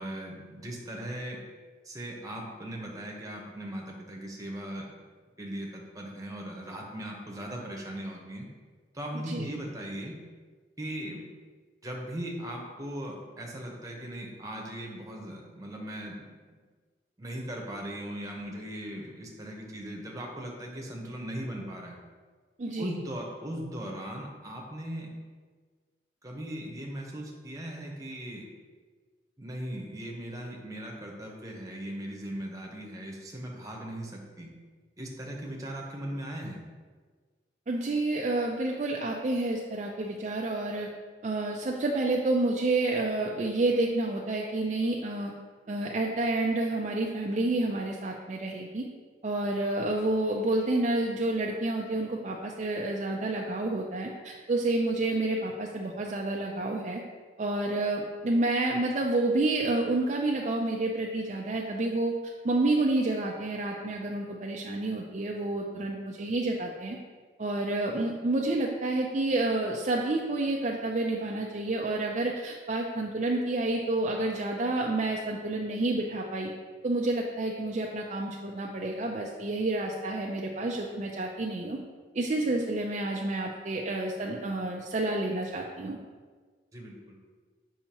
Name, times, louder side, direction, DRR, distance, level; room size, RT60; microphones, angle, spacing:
voice 1, 0.0-1.4 1.8-4.9 5.4-8.5 8.9-10.2 10.8-11.3 11.8-16.6 17.2-22.0 22.8-25.1 26.2-28.4 29.4-34.5 35.0-36.6 86.7-87.2, right 1 dB, 20° right, -1 dB, 0.9 m, -38 dB
voice 2, 22.6-22.9 37.7-40.9 41.2-45.3 45.7-48.9 49.2-57.0 57.4-67.0 67.4-76.5 76.8-81.8 82.1-86.0, right 2 dB, 40° right, -1 dB, 0.4 m, -29 dB
6.9 x 5.5 x 2.9 m, 1.5 s
head